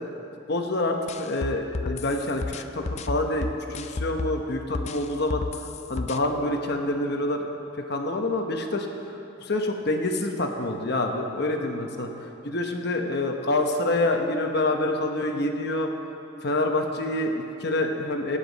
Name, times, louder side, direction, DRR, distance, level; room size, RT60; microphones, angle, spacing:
voice 1, 0.5-5.4 5.9-7.5 7.9-12.1 12.4-15.9 16.4-18.4, left 2 dB, 55° left, 3 dB, 1.1 m, -27 dB
sound 1, 1.1-4.4 4.7-6.2, left 3 dB, 35° left, 0.4 m, -32 dB
25.5 x 9.3 x 4.1 m, 2.9 s
head